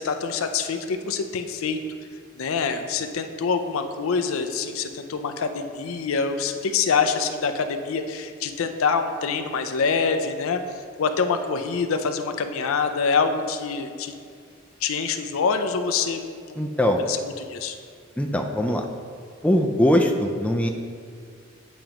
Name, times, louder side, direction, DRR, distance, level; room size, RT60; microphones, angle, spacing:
voice 1, 0.0-1.8 2.4-10.6 11.0-14.1 14.8-16.6 17.1-17.8, left 5 dB, 75° left, 8 dB, 0.4 m, -25 dB
voice 2, 16.6-17.0 18.2-18.8 19.4-20.7, left 1 dB, 5° left, 3 dB, 0.3 m, -21 dB
9.1 x 5.1 x 2.9 m, 2.2 s
head